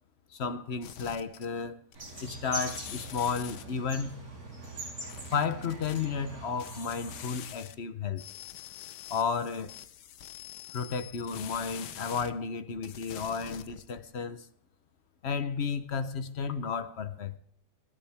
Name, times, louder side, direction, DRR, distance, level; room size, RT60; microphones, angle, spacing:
voice 1, 0.3-1.8 2.2-4.2 5.3-8.2 9.1-9.7 10.7-14.5 15.2-17.4, left 6 dB, 45° left, 0.9 m, -33 dB
sound 1, 0.8-1.7 1.9-3.8 5.0-6.0 6.6-7.8 8.1-12.3 12.7-14.0, left 11 dB, 75° left, 1.4 m, -45 dB
sound 2, 1.9-7.2, right 2 dB, 55° right, 5.5 m, -42 dB
27.5 x 10.0 x 3.5 m
omnidirectional pair, 1.9 m